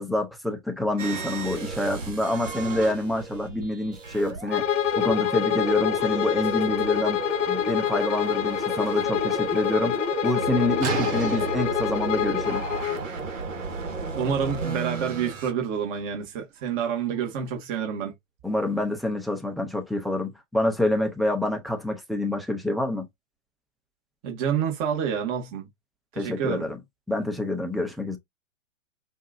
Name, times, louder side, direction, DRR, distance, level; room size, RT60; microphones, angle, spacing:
voice 1, 0.0-4.6 5.0-7.2 7.5-12.6 18.4-23.1 26.2-26.8 27.1-28.2, left 1 dB, ahead, 0.4 m, -27 dB
sound 1, 1.0-15.5, right 3 dB, 75° right, 1.6 m, -33 dB
Bowed string instrument, 4.5-13.0, left 11 dB, 65° left, 0.7 m, -27 dB
sound 2, 10.8-16.4, right 5 dB, 60° right, 2.8 m, -36 dB
voice 2, 14.1-18.1 24.2-25.7 26.1-26.6, right 7 dB, 40° right, 1.6 m, -28 dB
5.3 x 2.6 x 2.5 m
hypercardioid pair, 115°, 38 cm